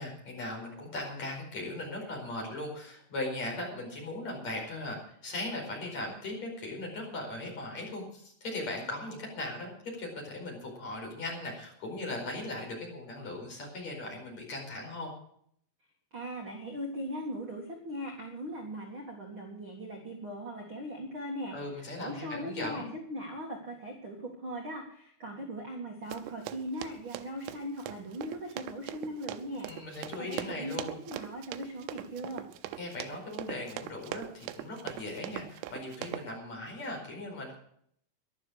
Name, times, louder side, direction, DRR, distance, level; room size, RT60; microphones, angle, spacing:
voice 1, 0.0-15.1 21.5-22.9 29.6-31.0 32.8-37.6, left 2 dB, 35° left, 0 dB, 5.8 m, -38 dB
voice 2, 16.1-21.5 22.0-29.7 30.2-32.4, equal, 45° right, 1 dB, 1.6 m, -39 dB
Run, 26.1-36.3, right 12 dB, 90° right, 3.6 m, -42 dB
14.5 x 11.5 x 6.5 m, 0.67 s
omnidirectional pair, 5.8 m